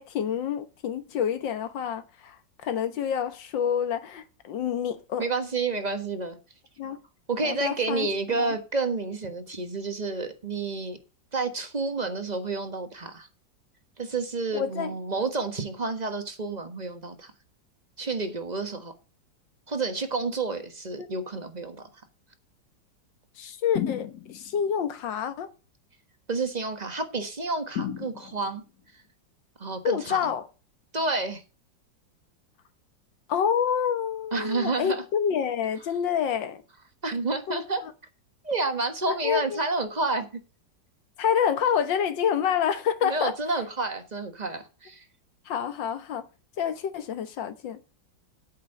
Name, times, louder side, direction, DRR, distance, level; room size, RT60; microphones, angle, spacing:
voice 1, 0.0-5.2 6.8-7.0 7.4-8.1 8.4-8.6 14.5-14.9 21.0-21.1 23.4-25.5 29.8-30.5 33.3-36.6 37.5-37.9 39.2-39.6 41.2-43.4 45.5-46.3 46.6-47.8, left 8 dB, 80° left, 1.9 m, -28 dB
voice 2, 5.2-6.4 7.3-11.0 11.3-13.3 14.0-17.3 18.0-18.9 19.7-21.8 26.3-28.6 29.6-30.3 30.9-31.4 34.3-35.0 37.0-37.8 38.4-40.4 43.0-45.0, right 3 dB, 25° right, 1.3 m, -30 dB
sound 1, 23.8-24.6 27.8-28.7, left 9 dB, 60° left, 1.4 m, -33 dB
8.5 x 7.6 x 6.6 m
omnidirectional pair, 2.0 m